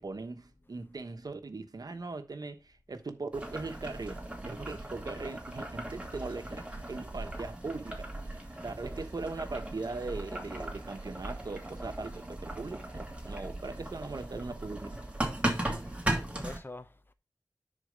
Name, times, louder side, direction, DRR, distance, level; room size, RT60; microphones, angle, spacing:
voice 1, 0.0-8.1 8.6-15.0, right 3 dB, 75° right, 1.1 m, -40 dB
Boiling, 3.3-16.6, right 1 dB, 20° right, 2.5 m, -38 dB
voice 2, 15.8-17.1, left 2 dB, 35° left, 0.9 m, -46 dB
10.0 x 4.1 x 5.1 m
wide cardioid pair, 60°, 7 cm